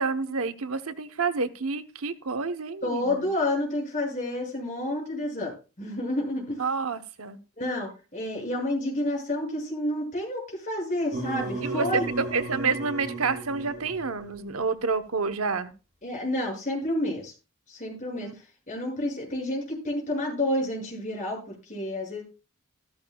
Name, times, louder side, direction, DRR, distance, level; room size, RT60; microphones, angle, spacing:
voice 1, 0.0-3.3 6.6-7.4 11.6-15.7 18.2-18.3, right 4 dB, 90° right, 10 dB, 1.0 m, -29 dB
voice 2, 2.8-6.6 7.6-12.0 16.0-17.3 17.7-22.2, left 1 dB, 35° left, -1 dB, 6.7 m, -30 dB
sound 1, 11.1-14.4, right 2 dB, 35° right, 7.5 m, -35 dB
14.0 x 13.5 x 2.3 m, 0.32 s
head